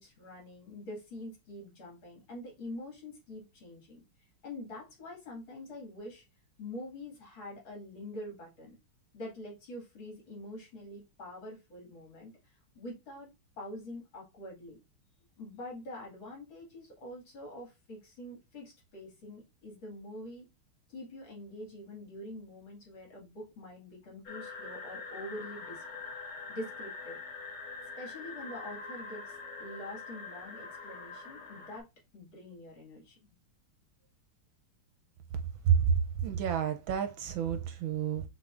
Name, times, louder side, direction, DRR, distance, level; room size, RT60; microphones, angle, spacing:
voice 1, 0.0-4.0 4.4-6.2 6.6-8.7 9.1-12.3 12.7-13.3 13.6-14.8 15.4-20.5 20.9-25.8 26.5-27.2 28.0-31.8 32.1-33.3, left 1 dB, 65° left, 2.9 m, -45 dB
sound 1, 24.2-31.8, left 4 dB, 45° left, 1.6 m, -44 dB
voice 2, 36.2-38.2, right 8 dB, 75° right, 1.3 m, -29 dB
5.7 x 3.7 x 2.5 m
omnidirectional pair, 2.3 m